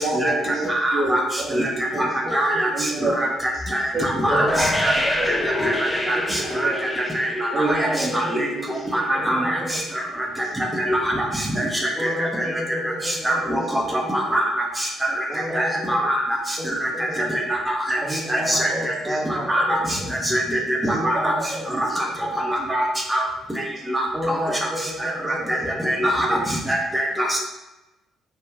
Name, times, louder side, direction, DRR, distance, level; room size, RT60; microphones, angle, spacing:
voice 1, 0.0-1.6 1.9-2.2 2.7-3.6 3.9-4.9 5.2-5.4 5.6-5.8 6.1-7.2 7.5-9.6 10.4-10.5 12.0-12.1 13.6-13.7 15.3-15.4 17.1-17.2 19.1-19.2 20.5-20.6 25.6-25.7, right 2 dB, 45° right, -3 dB, 0.6 m, -30 dB
voice 2, 0.7-1.2 1.5-1.7 2.0-2.1 2.3-2.7 3.2-4.9 5.6-5.7 6.1-6.7 7.1-7.3 7.6-7.8 8.1-8.4 8.9-9.6 10.9-11.0 11.6-11.7 13.2-14.5 15.5-16.2 16.8-16.9 17.3-18.0 18.3-18.9 19.5-19.8 20.3-20.4 21.0-21.3 22.5-22.8 23.1-23.2 23.9-24.1 25.0-25.1 25.8-26.4 26.7-27.4, right 1 dB, 10° right, -2 dB, 0.8 m, -23 dB
sound 1, 4.3-9.2, left 1 dB, 15° left, 0.5 m, -27 dB
voice 3, 4.3-5.3 5.7-6.2 7.6-8.4 9.1-9.8 11.9-14.1 15.3-16.0 16.6-16.7 16.9-17.2 18.0-19.8 20.9-21.6 22.2-22.3 24.1-25.8, equal, 25° right, -2 dB, 1.0 m, -31 dB
4.7 x 2.5 x 2.4 m, 1.0 s
figure-of-eight pair, 45°, 0 cm